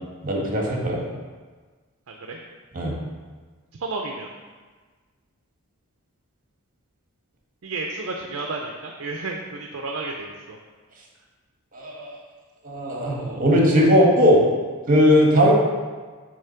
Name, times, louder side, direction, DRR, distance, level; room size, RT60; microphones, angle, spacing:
voice 1, 0.2-1.0 2.7-2.9 11.7-12.2 12.6-14.4 14.9-15.5, equal, 40° right, -2 dB, 1.4 m, -18 dB
voice 2, 2.1-2.4 3.8-4.3 7.6-10.6, right 3 dB, 60° right, 2 dB, 0.5 m, -32 dB
7.0 x 3.3 x 5.6 m, 1.4 s
head